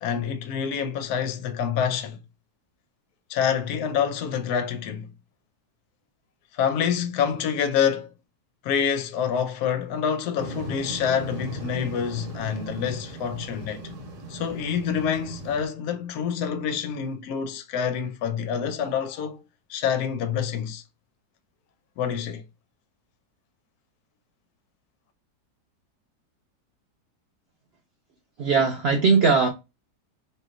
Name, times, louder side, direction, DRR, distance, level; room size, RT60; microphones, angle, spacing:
voice 1, 0.0-2.2 3.3-5.1 6.5-8.1 8.6-13.8 14.3-19.4 19.7-20.8 22.0-22.4, left 8 dB, 70° left, 1.1 m, -27 dB
sound 1, 10.4-15.7, right 2 dB, 50° right, 1.1 m, -38 dB
voice 2, 28.4-29.5, right 5 dB, 80° right, 0.5 m, -19 dB
3.1 x 2.7 x 3.7 m
omnidirectional pair, 1.9 m